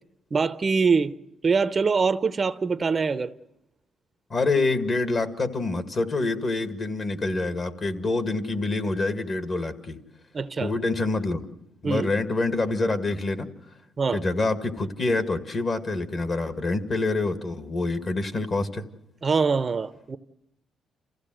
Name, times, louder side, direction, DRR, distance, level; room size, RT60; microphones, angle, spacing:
voice 1, 0.3-1.1 1.4-3.3 10.3-10.7 11.8-12.1 14.0-14.2 19.2-20.2, right 5 dB, 35° right, 0.7 m, -23 dB
voice 2, 4.3-10.0 10.6-11.4 11.8-13.5 14.1-18.9, left 3 dB, 40° left, 1.9 m, -26 dB
28.0 x 15.5 x 7.7 m
cardioid pair, 90°, 0 cm